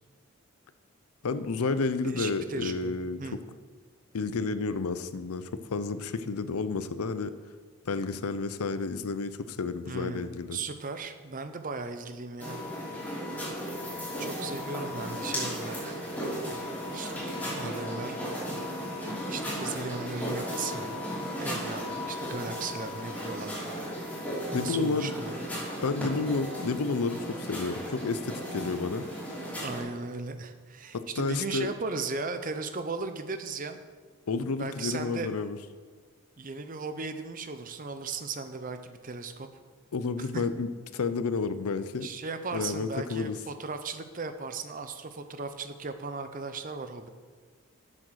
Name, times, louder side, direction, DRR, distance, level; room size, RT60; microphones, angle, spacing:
voice 1, 1.2-3.2 4.1-7.3 7.9-10.6 24.5-25.1 25.8-29.1 30.9-31.7 34.3-35.6 39.9-42.1 42.5-43.4, left 4 dB, 90° left, 12 dB, 0.6 m, -31 dB
voice 2, 2.0-3.4 9.8-13.1 14.2-16.3 16.9-17.2 17.5-18.2 19.3-21.0 21.4-23.5 23.8-25.4 29.6-33.8 34.6-35.3 36.4-39.5 40.3-40.4 42.0-47.1, right 4 dB, 40° right, 9 dB, 0.6 m, -37 dB
sound 1, 12.4-29.8, equal, 5° left, 3.2 m, -35 dB
7.7 x 7.7 x 6.3 m, 1.5 s
head